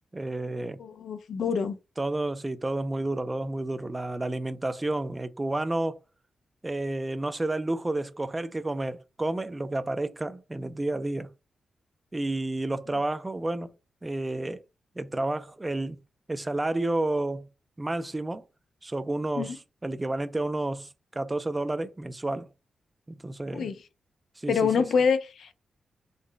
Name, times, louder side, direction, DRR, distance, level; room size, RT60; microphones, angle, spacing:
voice 1, 0.1-0.8 2.0-6.0 6.6-11.3 12.1-13.7 14.0-14.6 15.0-16.0 16.3-17.5 17.8-18.4 18.8-22.5 23.1-23.7 24.4-24.8, right 2 dB, 15° right, 0.3 m, -30 dB
voice 2, 0.8-1.7 19.4-19.6 23.5-23.8 24.5-25.5, left 6 dB, 70° left, 0.4 m, -26 dB
3.8 x 2.1 x 3.2 m
wide cardioid pair, 150°, 0 cm